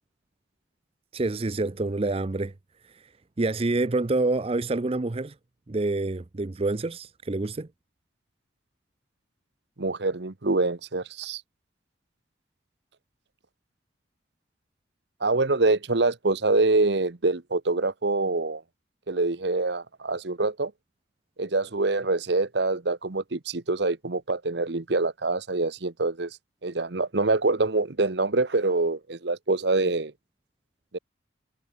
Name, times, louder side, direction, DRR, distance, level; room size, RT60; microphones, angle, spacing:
voice 1, 1.1-2.5 2.9-3.0 3.4-5.3 5.7-7.7, right 2 dB, 30° right, 0.5 m, -27 dB
voice 2, 9.8-11.4 15.2-18.6 19.1-20.7 21.4-26.4 26.6-30.1 30.9-31.0, right 3 dB, 60° right, 1.1 m, -25 dB
head